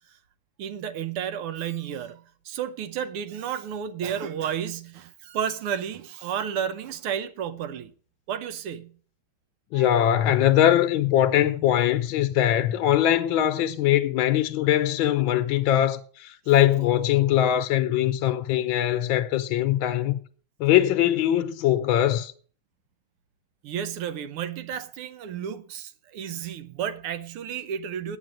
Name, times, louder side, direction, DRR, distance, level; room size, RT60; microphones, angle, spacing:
voice 1, 0.6-7.9 8.3-9.0 9.7-9.9 23.6-28.2, right 8 dB, 80° right, 1.8 m, -32 dB
voice 2, 9.7-20.2 20.6-22.3, left 12 dB, 70° left, 1.4 m, -22 dB
9.2 x 8.1 x 7.7 m
omnidirectional pair, 2.4 m